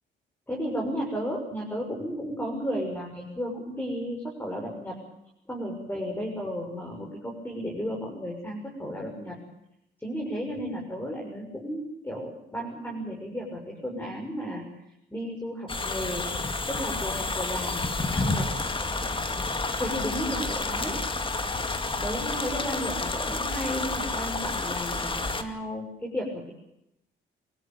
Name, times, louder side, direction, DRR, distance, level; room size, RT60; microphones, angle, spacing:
voice 1, 0.5-4.9 5.5-9.3 10.0-14.7 15.1-16.3 16.7-18.5 19.7-21.0 22.0-26.5, equal, 10° left, -1 dB, 6.8 m, -33 dB
sound 1, 15.7-25.4, left 3 dB, 25° left, 2.3 m, -30 dB
24.5 x 16.0 x 9.2 m, 0.84 s
cardioid pair, 90°, 20 cm